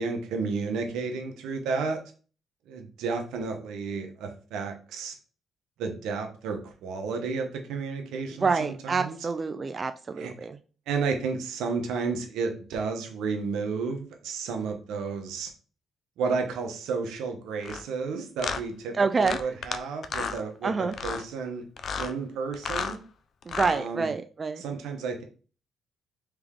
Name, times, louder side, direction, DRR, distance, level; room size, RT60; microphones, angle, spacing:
voice 1, 0.0-2.0 2.7-5.1 5.8-9.2 10.2-10.3 10.9-15.5 16.2-21.6 22.0-23.0 23.7-24.1 24.6-25.2, right 4 dB, 90° right, 4 dB, 0.8 m, -32 dB
voice 2, 8.4-10.6 18.9-19.6 20.6-21.0 23.5-24.6, right 4 dB, 35° right, 9 dB, 0.3 m, -27 dB
sound 1, 17.6-17.8 18.4-18.6 19.2-19.8 20.0-20.4 20.9-21.2 21.8-22.1 22.5-23.0 23.4-23.8, left 6 dB, 55° left, 0.4 m, -32 dB
3.5 x 3.3 x 3.5 m, 0.39 s
cardioid pair, 90°, 0 cm